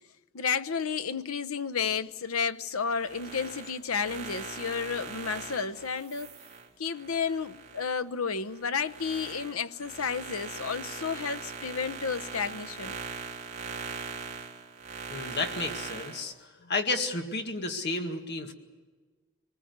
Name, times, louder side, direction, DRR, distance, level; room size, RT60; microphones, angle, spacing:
voice 1, 0.3-6.3 6.8-13.0, left 6 dB, 85° left, 0.9 m, -32 dB
sound 1, 2.9-8.0 8.4-16.3, right 5 dB, 35° right, 3.6 m, -41 dB
voice 2, 15.1-16.3 16.7-18.5, left 3 dB, 55° left, 2.0 m, -31 dB
24.5 x 20.0 x 8.1 m
head